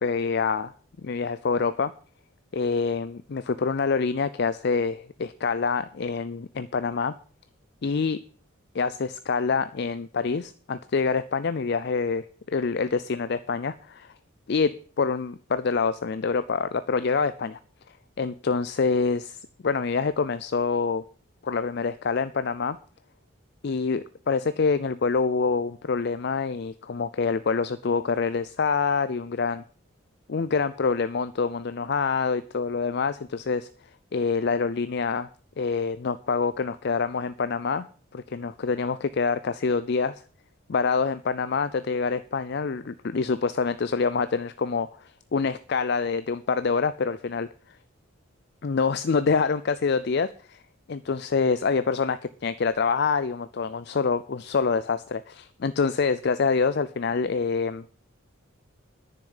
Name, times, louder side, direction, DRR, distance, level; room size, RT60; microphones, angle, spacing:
voice 1, 0.0-0.7 1.0-1.9 2.5-7.1 7.8-8.2 8.7-14.1 14.5-17.6 18.2-21.0 21.4-22.8 23.6-29.6 30.3-33.7 34.1-35.3 35.6-37.9 38.1-40.2 40.7-47.5 48.6-50.6 50.9-57.8, left 5 dB, 50° left, 14 dB, 0.4 m, -26 dB
10.0 x 6.8 x 7.8 m, 0.42 s
head